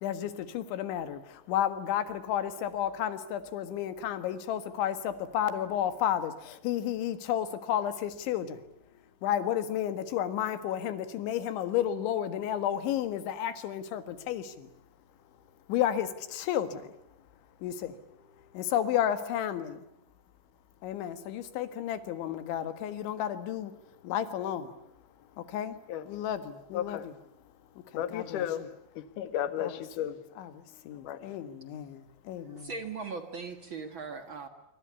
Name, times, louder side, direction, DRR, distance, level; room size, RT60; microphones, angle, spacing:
voice 1, 0.0-8.6 9.2-14.7 15.7-16.9 17.6-18.0 18.5-19.8 20.8-23.7 24.0-24.7 25.4-25.8 26.1-27.0 27.9-28.5 29.6-29.7 30.4-32.7, left 10 dB, 80° left, 11 dB, 4.0 m, -32 dB
voice 2, 26.7-27.1 27.9-28.7 29.0-30.2 31.0-31.3, left 10 dB, 55° left, 11 dB, 2.6 m, -34 dB
voice 3, 32.3-34.5, right 4 dB, 65° right, 7 dB, 1.2 m, -39 dB
25.5 x 25.0 x 8.3 m, 0.83 s
omnidirectional pair, 5.2 m